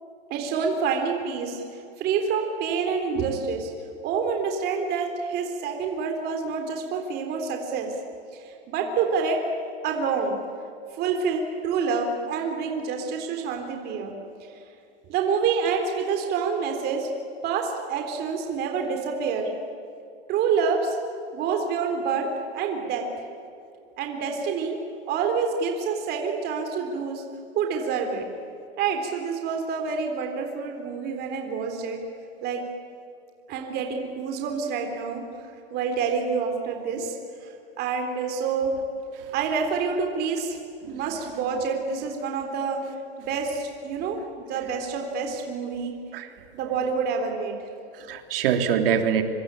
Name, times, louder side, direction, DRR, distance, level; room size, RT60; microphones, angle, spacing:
voice 1, 0.3-3.7 4.0-7.9 8.3-9.4 9.8-10.4 10.9-14.1 14.5-14.6 15.1-17.1 17.4-19.5 20.3-21.0 21.3-23.1 24.0-24.8 25.1-27.2 27.5-28.3 28.8-32.0 32.4-32.6 33.5-37.2 37.4-38.8 39.3-40.6 40.9-42.8 43.2-45.9 46.5-47.6, right 5 dB, 30° right, 3 dB, 3.6 m, -27 dB
voice 2, 48.0-49.2, right 8 dB, 60° right, 6 dB, 3.4 m, -24 dB
26.0 x 25.0 x 8.9 m, 2.6 s
supercardioid pair, 150°, 31 cm